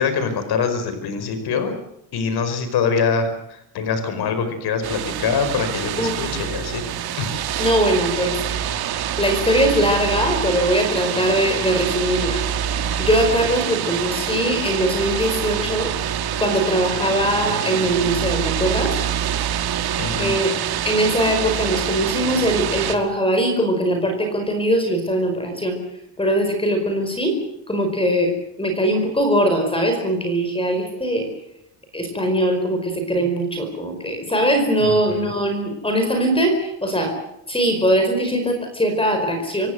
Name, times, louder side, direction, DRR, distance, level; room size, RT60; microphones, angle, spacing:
voice 1, 0.0-1.7 2.1-6.8 7.2-7.3 20.0-20.3 34.9-35.3, left 5 dB, 60° left, 9 dB, 5.1 m, -24 dB
sound 1, 4.8-23.0, right 9 dB, 60° right, 2.2 m, -25 dB
voice 2, 6.0-6.3 7.6-8.7 9.2-12.5 13.0-15.9 16.4-19.0 20.2-20.5 20.8-25.8 26.2-27.4 27.7-28.3 28.6-31.3 31.9-37.2 37.5-39.7, equal, 10° left, 5 dB, 4.8 m, -21 dB
27.0 x 17.0 x 7.8 m, 0.81 s
cardioid pair, 150°, 43 cm